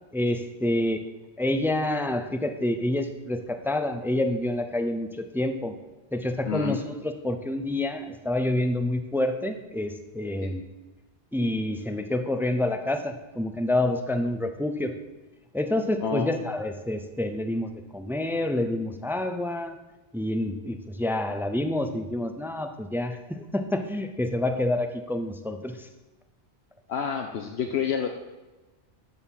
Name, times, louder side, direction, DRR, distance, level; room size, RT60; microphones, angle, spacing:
voice 1, 0.1-1.0 1.4-5.8 6.1-10.6 11.3-15.0 15.5-19.8 20.1-25.9, left 1 dB, 5° right, 7 dB, 0.5 m, -28 dB
voice 2, 6.4-6.8 10.4-10.5 16.0-16.3 26.9-28.1, left 7 dB, 75° left, 3 dB, 1.0 m, -28 dB
13.0 x 4.3 x 7.3 m, 1.1 s
omnidirectional pair, 1.1 m